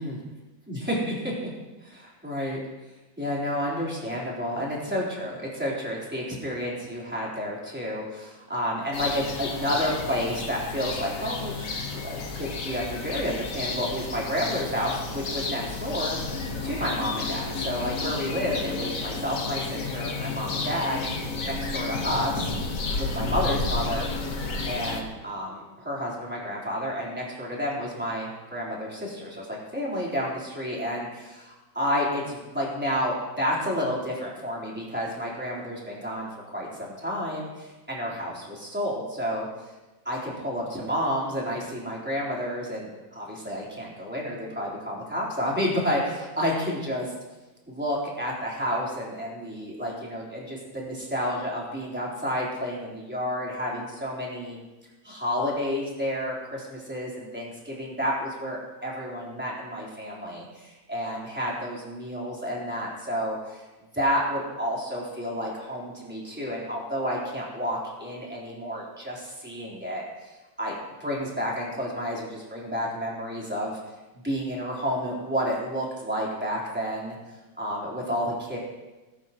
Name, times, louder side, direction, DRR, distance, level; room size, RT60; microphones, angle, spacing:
voice 1, 0.7-1.5 1.8-2.6 3.2-21.0 21.4-22.5 23.0-24.1 24.7-39.5 40.0-47.1 47.7-54.6 55.0-63.6 63.9-70.3 70.6-70.7 71.0-73.8 74.2-77.2 77.6-78.6, equal, 5° right, -6 dB, 3.9 m, -30 dB
sound 1, 8.9-25.0, left 3 dB, 50° left, 1.6 m, -31 dB
20.0 x 12.5 x 3.1 m, 1.1 s
omnidirectional pair, 2.1 m